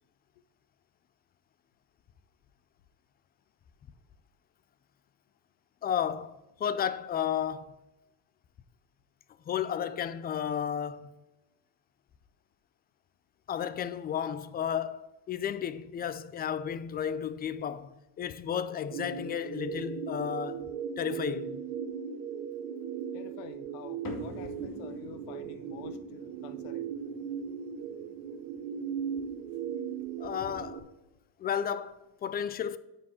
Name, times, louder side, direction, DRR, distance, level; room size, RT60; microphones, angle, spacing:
voice 1, 5.8-7.8 9.5-11.2 13.5-17.9 18.2-20.7 21.0-21.6 30.2-30.9 31.4-32.8, left 8 dB, 25° left, 0.3 m, -33 dB
sound 1, 18.9-30.8, right 7 dB, 75° right, 1.0 m, -38 dB
voice 2, 23.1-26.9, left 9 dB, 85° left, 1.0 m, -48 dB
sound 2, 24.0-30.8, left 3 dB, 45° left, 2.3 m, -49 dB
9.3 x 6.3 x 4.3 m
supercardioid pair, 110°, 46 cm